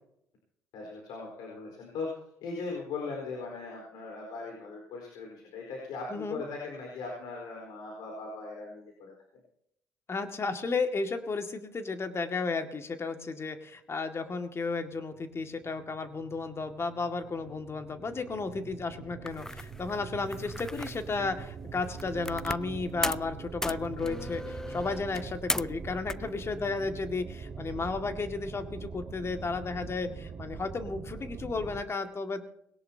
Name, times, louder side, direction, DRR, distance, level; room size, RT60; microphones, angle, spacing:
voice 1, 0.7-2.1 2.4-9.1, left 4 dB, 75° left, -1 dB, 4.6 m, -39 dB
voice 2, 6.1-6.4 10.1-32.4, left 4 dB, 35° left, 6 dB, 2.2 m, -33 dB
sound 1, 15.2-31.8, right 5 dB, 45° right, 1.6 m, -43 dB
sound 2, 19.3-22.7 23.0-23.3 23.6-25.8 26.1-26.7, left 1 dB, 5° left, 0.5 m, -37 dB
20.5 x 18.0 x 2.9 m, 0.78 s
supercardioid pair, 60°, 7 cm